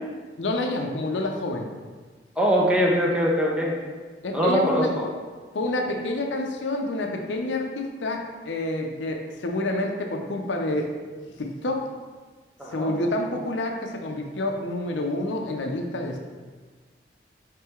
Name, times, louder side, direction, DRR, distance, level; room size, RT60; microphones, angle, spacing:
voice 1, 0.4-1.7 4.2-4.9 5.5-10.9 11.4-11.8 12.7-16.2, left 1 dB, 85° left, 3 dB, 0.5 m, -28 dB
voice 2, 2.4-3.7 4.3-5.1 12.6-12.9, equal, 5° right, -3 dB, 0.6 m, -22 dB
3.7 x 3.3 x 4.4 m, 1.4 s
head